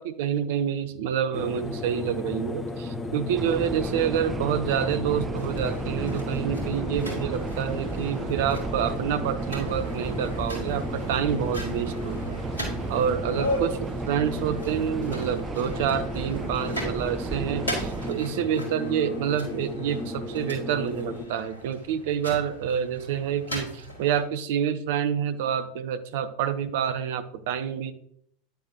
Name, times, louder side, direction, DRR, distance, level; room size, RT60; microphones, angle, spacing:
voice 1, 0.0-12.4 12.9-27.9, right 8 dB, 60° right, 11 dB, 0.8 m, -28 dB
sound 1, 1.3-21.3, left 2 dB, 20° left, 1.1 m, -35 dB
sound 2, 3.4-18.1, right 5 dB, 20° right, 0.6 m, -35 dB
sound 3, 5.4-24.2, left 1 dB, 80° left, 3.4 m, -38 dB
10.0 x 8.1 x 2.9 m, 0.66 s
figure-of-eight pair, 80°, 0 cm